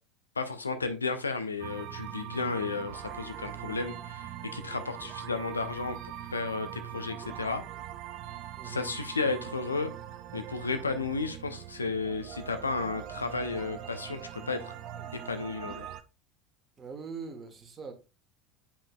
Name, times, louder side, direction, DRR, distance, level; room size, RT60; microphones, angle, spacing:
voice 1, 0.4-6.0 6.3-7.6 8.6-9.9 10.3-14.7 15.1-15.9, left 4 dB, 80° left, 0.7 m, -33 dB
sound 1, 1.6-16.0, right 11 dB, 45° right, 0.6 m, -42 dB
voice 2, 8.6-8.9 16.8-17.9, right 5 dB, 25° right, 1.3 m, -42 dB
8.6 x 5.1 x 2.3 m
figure-of-eight pair, 70°, 0 cm